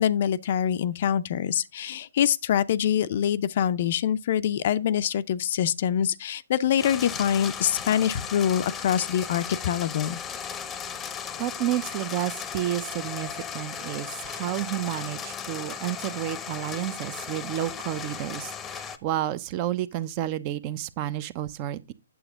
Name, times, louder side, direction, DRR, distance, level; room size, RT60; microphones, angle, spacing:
voice 1, 0.0-10.2, left 9 dB, 50° left, 0.5 m, -25 dB
sound 1, 6.8-19.0, left 7 dB, 15° left, 0.8 m, -36 dB
voice 2, 11.4-21.9, right 13 dB, 35° right, 0.7 m, -31 dB
8.7 x 7.0 x 3.6 m
hypercardioid pair, 145°, 0 cm